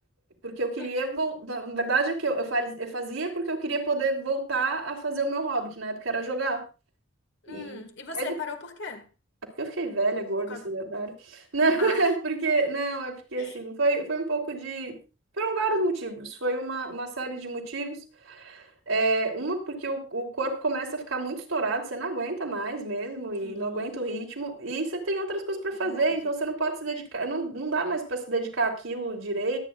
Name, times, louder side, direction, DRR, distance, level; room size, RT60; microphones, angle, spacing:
voice 1, 0.4-6.6 7.5-7.8 8.1-8.3 9.6-15.0 15.4-18.0 18.3-29.6, right 3 dB, 85° right, 3.3 m, -29 dB
voice 2, 7.4-9.1 10.4-10.7 11.8-12.1 13.4-13.6 23.4-24.0 25.8-26.2, left 4 dB, 60° left, 1.9 m, -39 dB
23.5 x 9.6 x 2.4 m
head